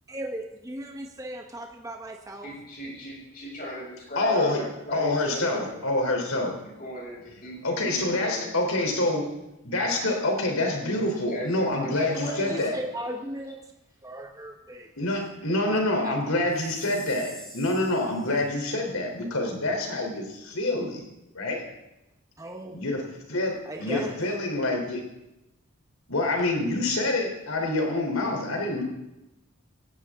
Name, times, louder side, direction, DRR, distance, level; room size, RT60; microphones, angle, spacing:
voice 1, 0.1-2.5 11.9-13.6 14.0-14.9 15.7-16.2 22.4-22.8 23.6-24.2, right 1 dB, 15° right, 2 dB, 1.2 m, -37 dB
voice 2, 2.4-5.8 6.6-8.5 8.8-8.9 11.2-12.7, left 1 dB, 40° left, -4 dB, 6.5 m, -37 dB
voice 3, 4.2-4.6 4.9-6.5 7.6-9.3 9.6-12.8 15.0-21.0 21.3-21.6 22.7-23.0 23.3-25.0 26.1-28.8, left 2 dB, 85° left, 2 dB, 3.6 m, -26 dB
Chime, 16.5-18.5, equal, 5° left, 4.9 m, -47 dB
17.5 x 16.5 x 3.7 m, 0.94 s
head